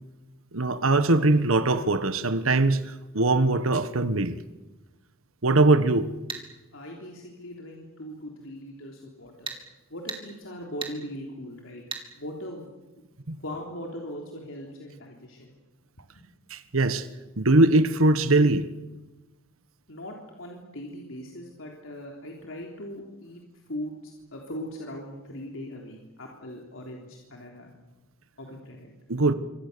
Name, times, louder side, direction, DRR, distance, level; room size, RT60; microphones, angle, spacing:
voice 1, 0.5-4.4 5.4-6.1 13.3-13.4 16.5-17.1 17.4-18.7 29.1-29.3, right 2 dB, 85° right, 1.4 m, -21 dB
sound 1, 6.3-6.5 9.5-9.6 10.1-10.2 10.8-11.0 11.9-12.1, right 5 dB, 25° right, 3.0 m, -34 dB
voice 2, 6.7-9.5 9.9-11.8 12.1-12.7 13.4-15.6 16.1-16.3 19.9-23.4 23.7-27.7 28.4-28.9, equal, 70° left, 3.5 m, -40 dB
27.0 x 25.0 x 6.9 m
head